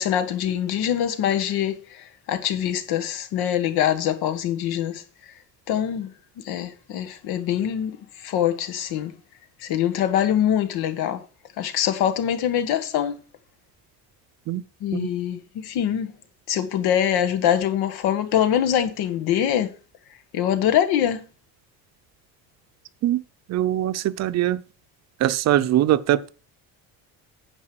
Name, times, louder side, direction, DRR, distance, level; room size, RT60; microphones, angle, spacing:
voice 1, 0.0-5.0 5.7-9.1 9.6-11.2 11.6-13.2 14.8-16.1 16.5-19.7 20.3-21.2, left 10 dB, 85° left, 1.7 m, -24 dB
voice 2, 23.5-24.6 25.2-26.3, right 13 dB, 45° right, 0.6 m, -22 dB
9.8 x 5.2 x 7.8 m
cardioid pair, 180°, 37 cm